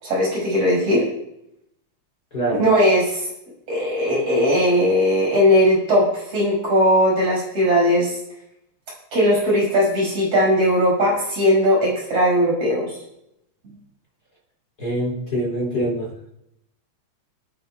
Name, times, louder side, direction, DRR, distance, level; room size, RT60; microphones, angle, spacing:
voice 1, 0.0-1.0 2.6-3.2 3.7-8.2 9.1-12.9, equal, 55° right, -3 dB, 6.8 m, -18 dB
voice 2, 2.3-2.6 14.8-16.3, right 1 dB, 30° left, -5 dB, 3.9 m, -25 dB
26.0 x 9.4 x 2.4 m, 0.80 s
omnidirectional pair, 3.5 m